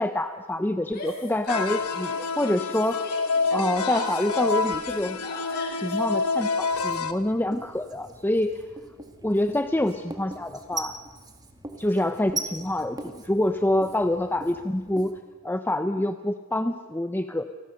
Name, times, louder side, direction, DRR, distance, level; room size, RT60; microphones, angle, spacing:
voice 1, 0.0-3.1 3.5-5.2 5.7-8.6 9.2-11.0 11.8-15.1 15.4-17.4, left 1 dB, 10° left, 8 dB, 0.7 m, -26 dB
Yell, 0.8-2.3 2.6-6.0, left 2 dB, 45° left, 7.0 m, -38 dB
sound 1, 1.5-7.1, left 4 dB, 75° left, 1.3 m, -28 dB
Writing, 6.7-15.2, right 2 dB, 20° right, 2.1 m, -40 dB
29.0 x 19.0 x 6.6 m, 1.4 s
head